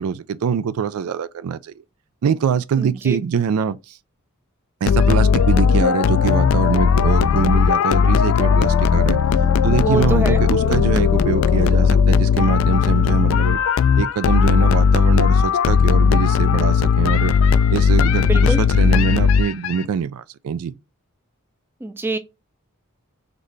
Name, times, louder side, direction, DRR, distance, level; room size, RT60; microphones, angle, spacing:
voice 1, 0.0-1.7 2.2-4.0 4.8-9.2 9.6-13.6 14.0-17.3 17.7-20.7, right 6 dB, 75° right, 0.4 m, -23 dB
voice 2, 2.8-3.2 9.6-10.8 18.1-18.6 21.8-22.2, right 3 dB, 10° right, 0.4 m, -26 dB
sound 1, 4.9-19.8, left 6 dB, 60° left, 0.3 m, -16 dB
4.0 x 3.2 x 3.3 m
head